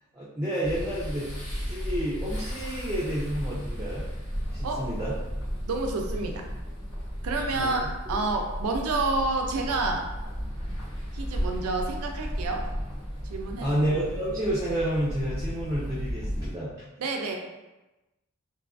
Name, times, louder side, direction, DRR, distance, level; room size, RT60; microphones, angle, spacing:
voice 1, 0.1-1.3 1.7-4.0 4.5-5.1 7.5-7.7 8.1-8.2 13.6-16.7, right 1 dB, 15° right, -8 dB, 0.4 m, -30 dB
sound 1, 0.6-16.5, equal, 70° left, 1.1 m, -34 dB
voice 2, 5.7-6.5 7.2-10.1 11.1-12.6 13.2-13.8 17.0-17.3, right 3 dB, 90° right, 3 dB, 0.4 m, -29 dB
2.6 x 2.3 x 2.4 m, 1.0 s
head